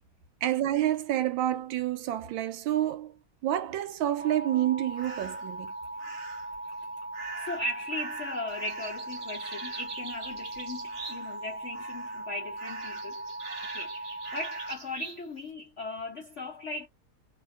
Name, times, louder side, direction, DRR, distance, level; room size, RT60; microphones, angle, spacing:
voice 1, 0.4-3.2 3.4-5.7, right 13 dB, 75° right, 1.3 m, -28 dB
sound 1, 4.2-14.7, right 2 dB, 80° left, 1.6 m, -39 dB
sound 2, 5.0-5.5 6.0-6.6 7.1-11.5 11.7-12.3 12.6-15.2, right 4 dB, 50° right, 1.2 m, -43 dB
voice 2, 7.4-13.3 13.7-16.9, left 1 dB, 55° left, 0.8 m, -38 dB
2.9 x 2.8 x 2.3 m
omnidirectional pair, 2.3 m